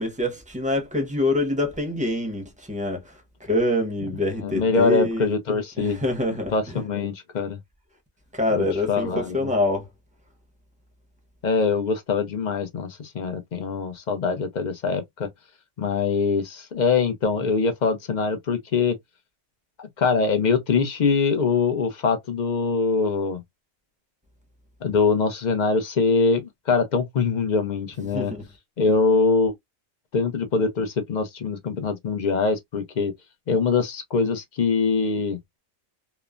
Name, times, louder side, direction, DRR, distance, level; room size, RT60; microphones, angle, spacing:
voice 1, 0.0-5.3 5.8-6.8 8.3-9.9 28.1-28.4, left 2 dB, 5° right, 0.6 m, -25 dB
voice 2, 4.4-6.0 6.5-7.6 8.5-9.5 11.4-15.3 15.8-18.9 19.8-23.4 24.8-28.3 28.8-29.5 30.1-33.1 33.5-35.4, left 4 dB, 50° left, 0.5 m, -23 dB
3.0 x 2.0 x 2.3 m
omnidirectional pair, 1.4 m